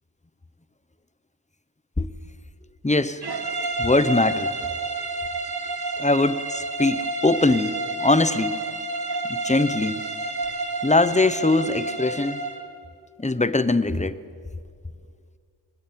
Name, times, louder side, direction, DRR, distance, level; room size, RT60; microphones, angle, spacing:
voice 1, 2.8-3.2 3.8-4.5 6.0-8.6 9.3-10.0 10.8-12.4 13.2-14.2, left 2 dB, 15° left, 15 dB, 0.9 m, -22 dB
sound 1, 3.2-12.7, right 2 dB, 55° right, 2.1 m, -29 dB
24.5 x 20.0 x 9.2 m, 2.3 s
wide cardioid pair, 65°, 46 cm